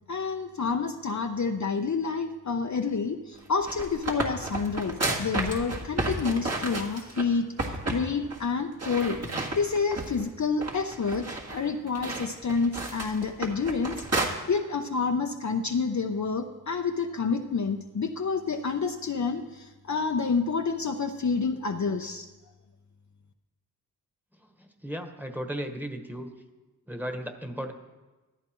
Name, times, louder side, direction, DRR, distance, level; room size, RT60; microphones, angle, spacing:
voice 1, 0.1-7.4 7.9-9.2 9.5-14.0 14.5-22.3, left 5 dB, 50° left, 5 dB, 0.7 m, -28 dB
sound 1, 3.5-7.2 7.6-8.0 8.3-8.4 8.8-10.2 10.6-14.3, right 2 dB, 45° right, 1.9 m, -32 dB
voice 2, 24.6-26.3 26.9-27.7, equal, 5° right, 5 dB, 1.4 m, -35 dB
14.0 x 12.0 x 3.1 m, 1.2 s
cardioid pair, 40°, 37 cm